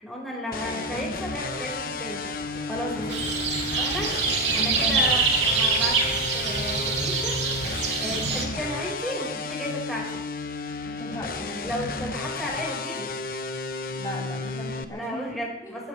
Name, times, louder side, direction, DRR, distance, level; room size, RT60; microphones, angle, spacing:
voice 1, 0.0-3.1 3.7-4.1 4.5-7.4 7.7-10.2 11.6-13.1 14.9-15.9, equal, ahead, -4 dB, 5.2 m, -34 dB
sound 1, 0.5-14.8, left 3 dB, 50° left, 1.0 m, -33 dB
sound 2, 1.4-9.2, left 1 dB, 75° left, 3.9 m, -38 dB
sound 3, 3.1-8.4, right 4 dB, 90° right, 3.0 m, -25 dB
voice 2, 11.0-11.7 13.9-15.2 15.6-15.8, left 1 dB, 20° left, -5 dB, 4.4 m, -37 dB
22.0 x 17.5 x 3.4 m, 0.87 s
head